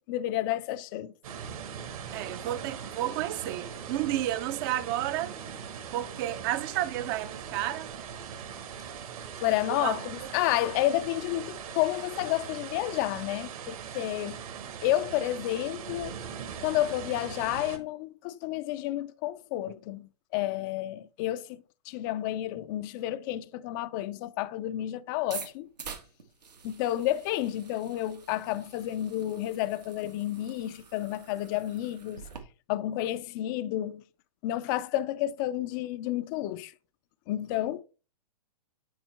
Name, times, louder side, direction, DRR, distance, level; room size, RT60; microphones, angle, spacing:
voice 1, 0.1-1.1 9.4-14.4 14.8-16.2 16.6-21.6 21.9-25.7 26.6-32.2 32.7-34.0 34.4-36.7 37.3-37.8, left 14 dB, 30° left, 0.4 m, -30 dB
sound 1, 1.2-17.8, right 7 dB, 60° right, 1.5 m, -40 dB
voice 2, 2.1-5.3 5.9-7.9 9.7-10.0, right 14 dB, 35° right, 0.5 m, -31 dB
sound 2, 25.2-32.4, right 6 dB, 85° right, 1.5 m, -47 dB
8.5 x 4.3 x 3.3 m
hypercardioid pair, 125°, 20 cm